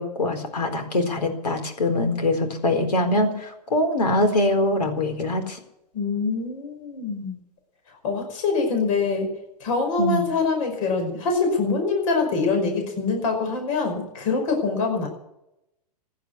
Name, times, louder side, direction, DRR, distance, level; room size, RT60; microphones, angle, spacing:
voice 1, 0.0-5.6 10.0-10.2, left 1 dB, 90° left, 7 dB, 4.2 m, -23 dB
voice 2, 5.9-7.4 8.0-9.3 9.6-15.1, left 4 dB, 55° left, 3 dB, 5.3 m, -24 dB
16.5 x 10.0 x 8.4 m, 0.84 s
hypercardioid pair, 125°, 20 cm